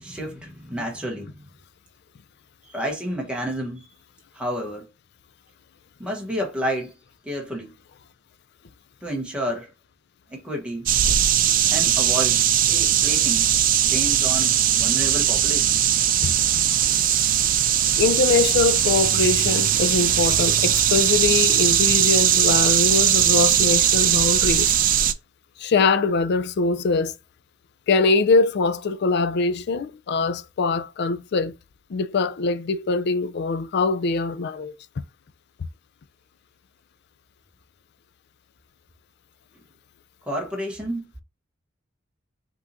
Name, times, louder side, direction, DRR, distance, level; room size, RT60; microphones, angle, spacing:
voice 1, 0.0-1.4 2.6-3.9 4.3-4.9 6.0-6.9 7.2-7.7 9.0-9.7 10.3-10.9 11.7-13.5 13.8-15.7 40.3-41.1, equal, 5° right, 1.0 m, -30 dB
sound 1, 10.9-25.1, right 10 dB, 45° right, 0.4 m, -19 dB
voice 2, 18.0-24.7 25.6-27.1 27.9-31.5 31.9-35.0, left 4 dB, 55° left, 0.4 m, -22 dB
5.6 x 3.0 x 2.5 m
head